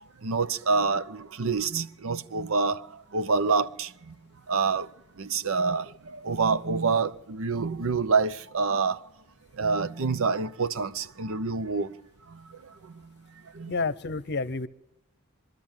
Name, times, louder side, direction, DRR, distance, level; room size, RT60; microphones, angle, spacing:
voice 1, 0.2-4.1 4.5-4.9 5.2-9.0 9.5-11.9 12.3-13.2 13.4-13.7, right 4 dB, 70° right, 0.8 m, -27 dB
voice 2, 13.7-14.7, left 3 dB, 50° left, 0.8 m, -29 dB
24.5 x 13.0 x 9.0 m
head